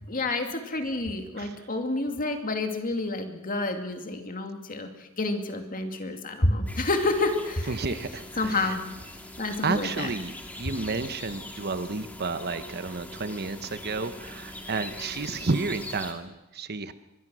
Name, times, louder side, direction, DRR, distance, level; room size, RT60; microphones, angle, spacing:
voice 1, 0.0-7.7 8.4-8.8 9.4-10.1, left 2 dB, 40° left, 5 dB, 2.5 m, -29 dB
voice 2, 1.3-1.7 7.7-8.8 9.4-16.9, right 3 dB, 45° right, 11 dB, 1.1 m, -31 dB
sound 1, 6.7-16.1, left 1 dB, 5° left, 2.5 m, -42 dB
24.5 x 21.5 x 6.3 m, 1.0 s
head